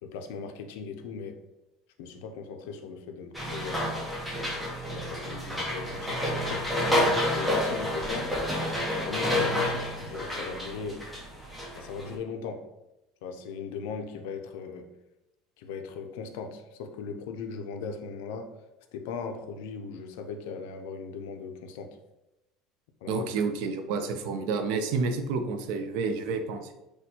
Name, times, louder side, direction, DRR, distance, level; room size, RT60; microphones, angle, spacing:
voice 1, 0.0-1.4 2.0-4.0 4.9-8.3 8.9-11.1 11.7-12.7 13.2-14.9 15.6-18.5 18.9-22.0 23.0-23.3, left 5 dB, 80° left, 0.4 m, -39 dB
sound 1, 3.3-12.1, left 1 dB, 5° right, 0.5 m, -29 dB
voice 2, 23.1-26.7, right 4 dB, 60° right, 0.4 m, -29 dB
4.2 x 2.2 x 2.7 m
cardioid pair, 180°, 0 cm